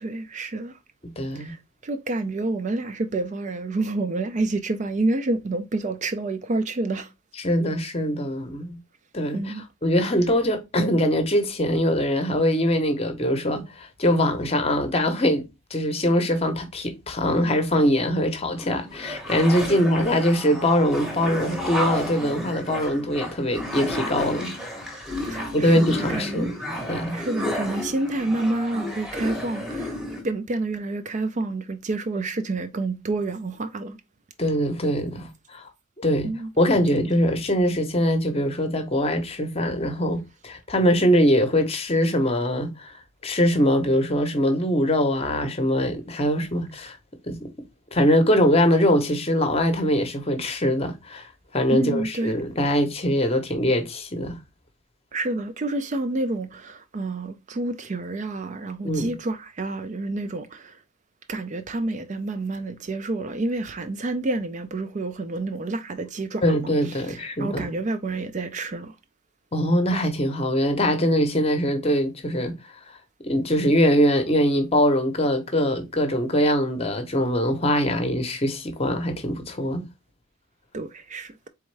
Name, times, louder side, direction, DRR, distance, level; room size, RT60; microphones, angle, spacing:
voice 1, 0.0-0.7 1.4-1.6 1.8-7.1 9.3-9.6 25.3-26.5 27.1-29.9 30.2-34.0 36.2-36.5 51.7-52.3 55.1-60.6 61.3-66.4 67.1-68.9 80.7-81.3, right 2 dB, 35° right, 0.3 m, -28 dB
voice 2, 1.2-1.5 7.3-8.8 9.1-15.5 15.7-24.5 25.5-26.5 26.9-27.2 34.4-35.7 36.0-36.3 36.6-43.0 43.2-47.0 47.3-47.5 47.9-54.4 58.8-59.1 66.4-67.7 69.5-72.5 73.2-79.9, equal, 25° left, 0.7 m, -22 dB
sound 1, 18.6-30.2, left 1 dB, ahead, 0.8 m, -32 dB
4.1 x 3.5 x 3.2 m
head